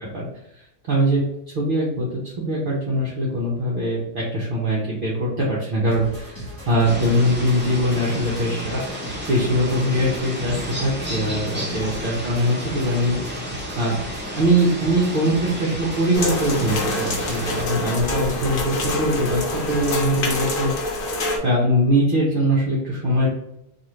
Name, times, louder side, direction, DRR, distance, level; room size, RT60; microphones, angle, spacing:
voice 1, 0.6-1.2 1.5-8.8 9.3-13.4 13.8-13.9 14.3-20.7 21.4-23.3, equal, 55° right, -6 dB, 0.8 m, -22 dB
sound 1, 5.9-20.1, equal, 15° left, 1.1 m, -37 dB
sound 2, 6.8-17.6, equal, 10° right, 0.6 m, -32 dB
sound 3, 16.1-21.4, left 1 dB, 55° left, 0.7 m, -26 dB
2.5 x 2.4 x 3.0 m, 0.82 s
omnidirectional pair, 1.2 m